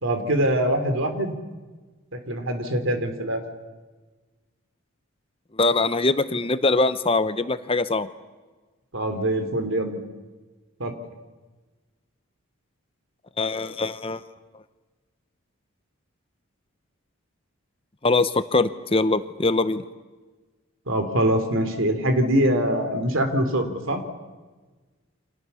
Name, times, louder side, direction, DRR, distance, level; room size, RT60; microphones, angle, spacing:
voice 1, 0.0-1.4 2.1-3.4 8.9-10.0 10.8-11.0 20.9-24.0, right 1 dB, 60° right, 7 dB, 3.5 m, -23 dB
voice 2, 5.6-8.1 13.4-14.2 18.0-19.8, left 3 dB, 25° left, 12 dB, 0.8 m, -22 dB
29.5 x 26.0 x 7.1 m, 1.3 s
head